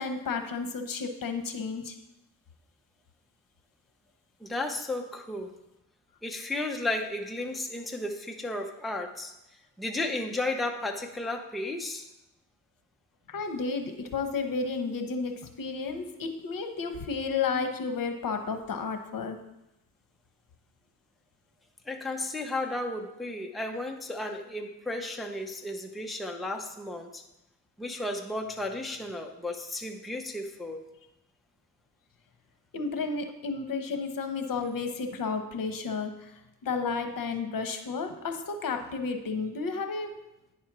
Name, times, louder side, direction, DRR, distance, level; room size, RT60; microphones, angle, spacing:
voice 1, 0.0-1.9 13.3-19.4 32.7-36.3 36.6-40.1, left 4 dB, 65° left, 6 dB, 1.0 m, -32 dB
voice 2, 4.4-5.6 6.2-9.3 9.8-12.1 21.9-27.2 27.8-30.8, left 2 dB, ahead, 2 dB, 0.6 m, -34 dB
9.6 x 4.3 x 6.0 m, 0.89 s
wide cardioid pair, 130°, 35 cm